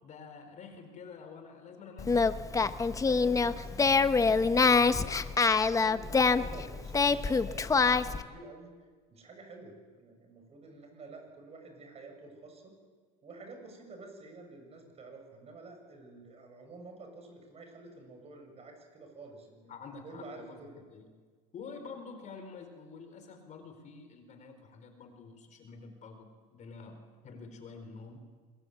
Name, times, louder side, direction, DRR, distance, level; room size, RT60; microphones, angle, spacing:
voice 1, 0.0-2.8 3.2-3.6 19.7-20.6 20.9-21.0 21.5-28.2, left 5 dB, 45° left, 6 dB, 4.4 m, -48 dB
Singing, 2.0-8.2, left 4 dB, 20° left, 0.9 m, -25 dB
voice 2, 2.9-5.2 5.5-8.7 9.1-12.7 13.2-19.7 20.0-20.8, right 3 dB, 35° right, 4 dB, 7.3 m, -50 dB
25.0 x 20.5 x 8.2 m, 1.5 s
supercardioid pair, 110°, 18 cm